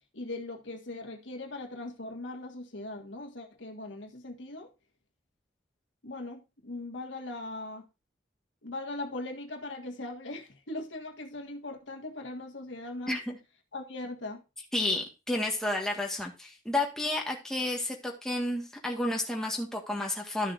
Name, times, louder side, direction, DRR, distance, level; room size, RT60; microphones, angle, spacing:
voice 1, 0.1-4.7 6.0-7.8 8.6-13.2 13.7-14.4, left 2 dB, 85° left, 1.7 m, -40 dB
voice 2, 13.1-13.4 14.7-20.5, left 1 dB, 5° left, 1.6 m, -31 dB
13.0 x 6.5 x 2.6 m
head